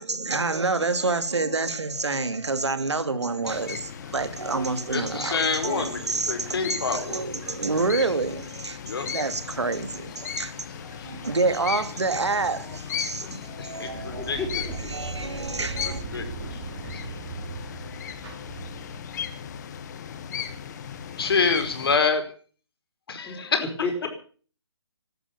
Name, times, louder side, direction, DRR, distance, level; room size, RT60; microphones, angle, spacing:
voice 1, 0.0-16.0, right 3 dB, 80° right, 2.7 m, -28 dB
sound 1, 3.4-22.0, left 8 dB, 40° left, 1.7 m, -37 dB
voice 2, 4.9-6.0 6.3-7.2 8.8-9.1 11.0-11.1 13.2-14.7 15.6-16.6 16.9-17.2 17.8-18.0 21.2-22.3 23.1-23.7, left 5 dB, 60° left, 4.7 m, -28 dB
sound 2, 13.7-19.3, right 4 dB, 30° right, 5.9 m, -38 dB
voice 3, 14.2-14.5 14.8-14.9 23.3-23.4 23.8-24.1, left 4 dB, 10° left, 4.2 m, -32 dB
16.5 x 12.5 x 7.0 m
figure-of-eight pair, 145°, 14 cm